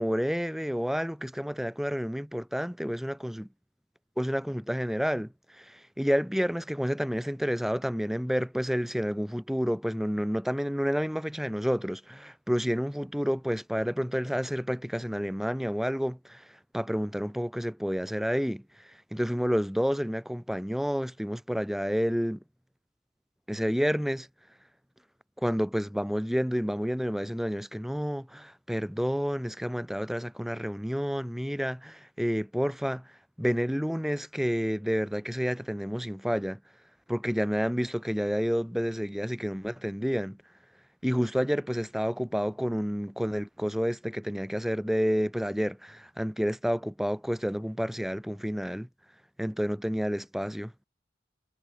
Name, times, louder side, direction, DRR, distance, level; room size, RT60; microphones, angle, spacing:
voice 1, 0.0-3.5 4.2-5.3 5.6-16.4 16.7-18.6 19.1-22.4 23.5-24.3 25.4-33.0 33.4-36.6 37.1-40.4 41.0-48.9 49.4-50.7, equal, ahead, 1.8 m, -29 dB
head